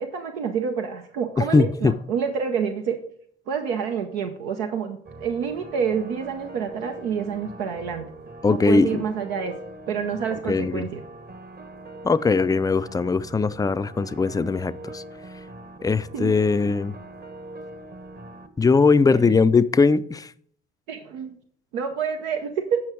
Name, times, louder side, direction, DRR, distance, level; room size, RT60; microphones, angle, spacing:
voice 1, 0.0-3.0 3.5-8.1 8.5-9.5 9.9-11.0 16.1-16.4 19.1-19.4 20.9-21.4 21.7-22.8, right 7 dB, 80° right, 0.8 m, -28 dB
voice 2, 1.4-2.0 8.4-9.0 10.5-10.9 12.0-15.0 15.8-17.0 18.6-20.3, left 4 dB, 10° left, 0.4 m, -20 dB
sound 1, 5.1-18.5, right 2 dB, 30° right, 1.1 m, -42 dB
8.6 x 5.8 x 4.7 m
hypercardioid pair, 50°, 30 cm